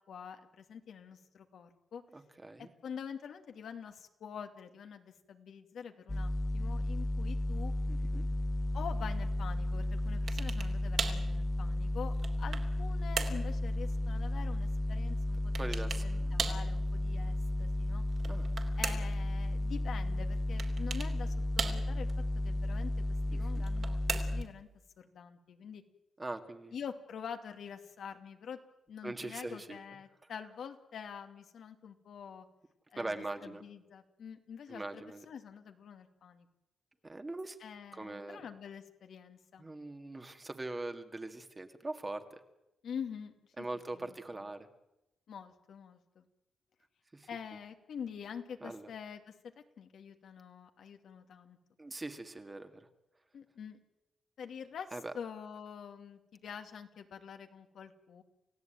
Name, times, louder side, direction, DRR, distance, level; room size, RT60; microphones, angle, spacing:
voice 1, 0.1-2.0 2.6-7.7 8.7-18.0 18.8-22.1 22.4-24.7 25.0-25.8 26.7-28.6 28.9-32.5 32.9-33.1 33.4-36.5 37.6-39.7 42.8-43.7 44.0-44.1 45.3-46.3 47.3-49.3 49.8-51.6 53.3-53.8 54.4-58.2, left 7 dB, 70° left, 6 dB, 2.4 m, -46 dB
voice 2, 2.1-2.7 7.9-8.3 15.6-16.4 18.2-18.5 23.3-23.6 26.2-26.8 29.0-29.8 30.2-30.3 33.0-33.6 34.7-35.3 37.0-37.6 37.9-38.5 39.6-42.4 43.6-44.7 47.1-47.3 48.6-48.9 51.8-52.9 54.9-55.1, right 2 dB, 20° right, 7 dB, 1.9 m, -42 dB
sound 1, 6.1-24.4, left 1 dB, 15° left, 0.8 m, -33 dB
sound 2, 10.3-10.7 11.0-11.3 11.9-12.7 13.2-13.4 15.5-16.1 16.4-16.7 18.1-19.2 20.6-21.1 21.6-22.1 23.5-24.5, right 5 dB, 50° right, 3.2 m, -37 dB
29.0 x 16.5 x 9.1 m, 0.93 s
wide cardioid pair, 140°, 0 cm